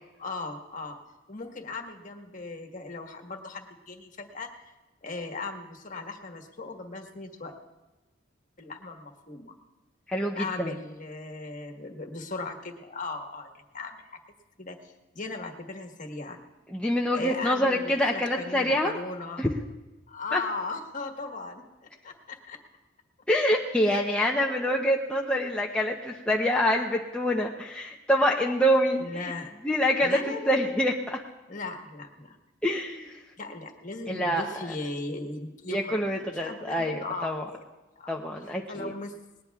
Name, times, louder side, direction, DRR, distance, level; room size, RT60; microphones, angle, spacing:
voice 1, 0.2-1.0 1.3-4.7 5.0-7.5 8.6-9.5 10.3-14.2 14.6-16.4 17.1-19.4 20.1-21.7 22.0-22.6 23.8-24.1 24.4-24.7 29.0-29.5 30.0-30.7 31.5-32.4 33.4-37.6 38.0-38.2 38.7-39.2, left 3 dB, 40° left, 3 dB, 1.4 m, -38 dB
voice 2, 10.1-10.7 16.7-19.0 19.4-19.5 20.3-20.4 23.3-29.3 29.6-30.2 30.5-31.2 32.6-33.2 34.1-34.5 35.7-37.4 38.1-38.9, equal, 5° left, -2 dB, 0.7 m, -26 dB
19.5 x 18.5 x 2.4 m, 1.1 s
head